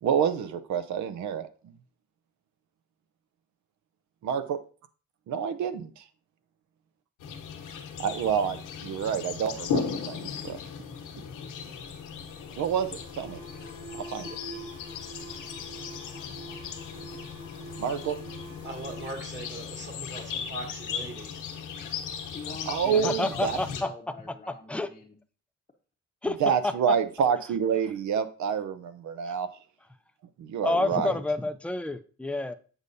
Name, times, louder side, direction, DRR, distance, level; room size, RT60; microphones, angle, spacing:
voice 1, 0.0-1.7 4.2-4.6 5.3-6.1 8.0-10.6 12.6-13.4 14.1-14.4 17.8-18.2 22.7-23.6 26.2-29.5 30.4-31.2, right 7 dB, 70° right, 12 dB, 0.7 m, -28 dB
sound 1, 7.2-23.8, left 6 dB, 85° left, 1.2 m, -37 dB
Alarm, 11.7-20.3, right 1 dB, 15° right, 1.0 m, -46 dB
voice 2, 18.6-21.5, right 2 dB, 40° right, 1 dB, 2.1 m, -40 dB
voice 3, 22.3-25.1, left 4 dB, 20° left, -1 dB, 0.8 m, -44 dB
voice 4, 22.9-23.9 24.7-24.9 26.2-26.4 26.6-26.7 30.6-32.5, left 2 dB, 5° left, 10 dB, 0.4 m, -28 dB
8.1 x 5.5 x 2.6 m, 0.39 s
cardioid pair, 90°, 30 cm